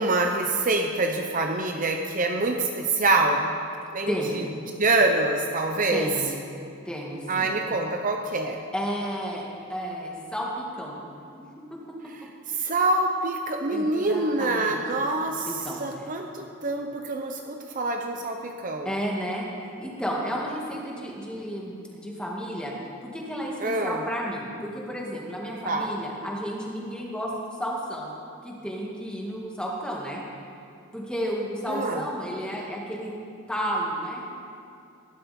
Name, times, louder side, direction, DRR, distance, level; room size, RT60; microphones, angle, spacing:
voice 1, 0.0-3.5 3.9-4.1 4.8-6.1 7.3-8.6 12.5-15.5 15.8-18.9 23.6-24.0 25.6-25.9 31.7-32.0, right 2 dB, 35° right, 3 dB, 0.7 m, -25 dB
voice 2, 4.1-4.4 5.9-6.3 6.9-7.5 8.7-11.0 11.3-11.4 11.7-11.8 13.7-14.8 15.2-16.1 18.9-19.5 19.8-22.7 23.0-28.1 28.4-30.2 30.9-33.1 33.5-34.3, equal, 5° left, -3 dB, 1.9 m, -32 dB
19.0 x 12.0 x 4.3 m, 2.6 s
head